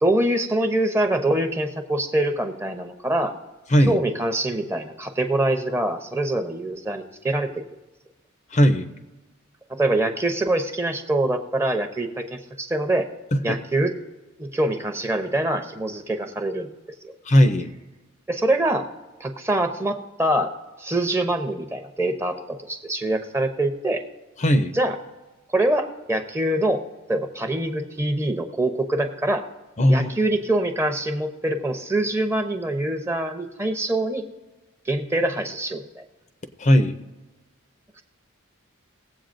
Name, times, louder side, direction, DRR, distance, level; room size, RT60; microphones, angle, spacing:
voice 1, 0.0-3.3 3.9-7.5 9.7-13.1 13.4-13.9 14.4-16.7 17.0-17.1 18.3-18.9 19.2-20.5 20.8-24.0 24.7-25.0 25.5-26.8 27.1-29.4 29.9-34.2 34.9-36.0, right 1 dB, 10° right, 6 dB, 0.7 m, -24 dB
voice 2, 8.5-8.9 13.5-13.6 17.2-17.7 24.4-24.7 29.8-30.1 36.6-37.0, equal, 35° left, 9 dB, 0.6 m, -17 dB
19.0 x 7.9 x 2.6 m, 1.2 s
head